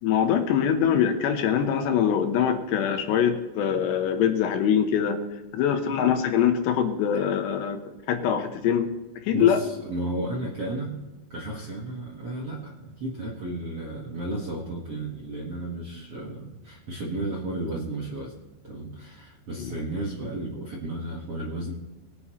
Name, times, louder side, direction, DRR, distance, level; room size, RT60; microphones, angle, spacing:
voice 1, 0.0-5.2 5.5-7.8 8.1-8.9 9.2-9.6 19.6-19.7, left 8 dB, 75° left, 6 dB, 3.1 m, -23 dB
voice 2, 9.3-11.0 11.3-18.3 18.6-21.7, right 1 dB, 55° right, -3 dB, 1.7 m, -33 dB
21.0 x 9.8 x 3.1 m, 1.1 s
omnidirectional pair, 5.3 m